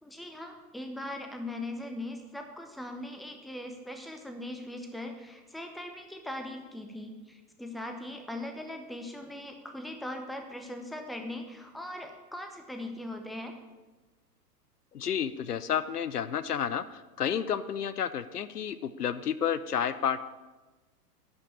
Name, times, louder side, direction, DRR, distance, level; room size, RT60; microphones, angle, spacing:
voice 1, 0.0-13.6, left 1 dB, ahead, 5 dB, 0.8 m, -40 dB
voice 2, 14.9-20.2, left 8 dB, 75° left, 14 dB, 0.7 m, -31 dB
11.0 x 5.9 x 8.4 m, 1.2 s
figure-of-eight pair, 100°, 48 cm